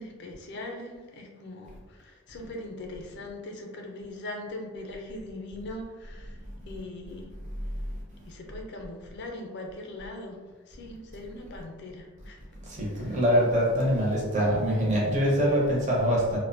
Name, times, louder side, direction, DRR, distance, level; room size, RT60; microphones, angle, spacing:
voice 1, 0.0-7.3 8.2-12.4 12.9-13.2, left 1 dB, 50° left, 2 dB, 0.4 m, -41 dB
voice 2, 12.6-16.4, equal, 35° right, -3 dB, 0.5 m, -24 dB
2.5 x 2.0 x 2.5 m, 1.4 s
head